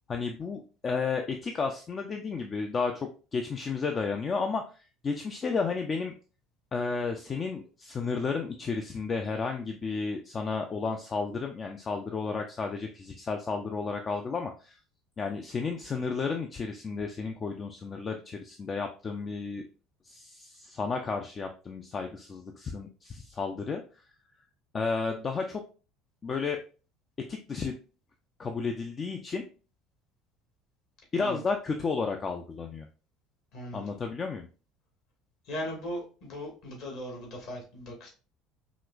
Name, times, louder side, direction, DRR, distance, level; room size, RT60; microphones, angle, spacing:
voice 1, 0.1-6.1 6.7-14.8 15.2-19.6 20.0-23.8 24.7-25.6 26.2-26.6 27.3-27.7 28.4-29.4 31.1-32.9 33.7-34.5, left 4 dB, 30° left, 4 dB, 0.4 m, -32 dB
voice 2, 33.5-33.8 35.5-38.1, equal, 55° left, 0 dB, 1.8 m, -38 dB
5.0 x 2.9 x 2.3 m, 0.35 s
figure-of-eight pair, 60°, 0 cm